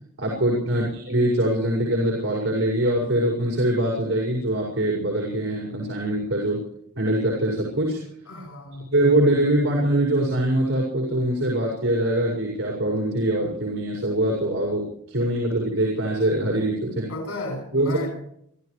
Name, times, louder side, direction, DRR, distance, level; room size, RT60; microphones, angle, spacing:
voice 1, 0.2-6.6 7.0-8.0 8.9-17.1 17.7-18.0, right 1 dB, 60° right, -3 dB, 5.9 m, -23 dB
voice 2, 8.3-8.8 17.1-18.1, left 2 dB, 85° left, 2 dB, 6.8 m, -34 dB
27.5 x 15.0 x 3.4 m, 0.71 s
head